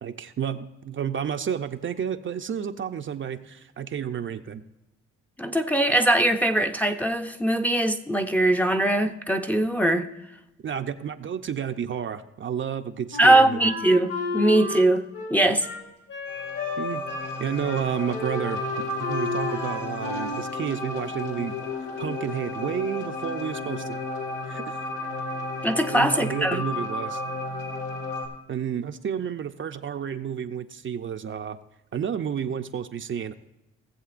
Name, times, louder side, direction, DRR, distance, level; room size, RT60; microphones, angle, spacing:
voice 1, 0.0-4.6 10.6-13.6 16.8-17.0 17.4-21.6 22.0-24.0 24.5-24.8 25.9-27.2 28.5-31.6 31.9-33.4, right 8 dB, 40° right, 0.6 m, -31 dB
voice 2, 5.4-10.1 13.2-15.7 25.6-26.6, right 1 dB, 5° left, 0.6 m, -21 dB
Wind instrument woodwind instrument, 13.1-17.4 17.6-17.8 18.1-20.4, left 2 dB, 75° left, 3.9 m, -32 dB
sound 1, 16.3-28.3, left 3 dB, 90° left, 1.8 m, -33 dB
18.0 x 7.5 x 2.5 m
cardioid pair, 90°, 30 cm